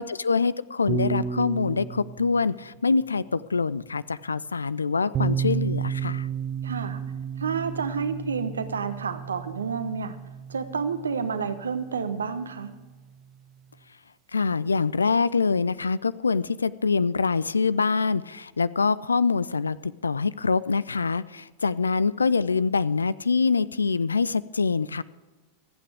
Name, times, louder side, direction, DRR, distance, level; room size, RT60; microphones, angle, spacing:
voice 1, 0.0-6.3 14.3-25.0, left 4 dB, 75° left, 19 dB, 0.4 m, -25 dB
Piano, 0.9-5.3, right 4 dB, 10° right, 1.6 m, -35 dB
sound 1, 5.1-12.8, right 9 dB, 30° right, 0.5 m, -33 dB
voice 2, 6.6-7.0 7.4-10.2 10.5-12.7, right 5 dB, 70° right, 10 dB, 1.1 m, -29 dB
26.5 x 8.9 x 3.5 m, 1.2 s
figure-of-eight pair, 90°, 0 cm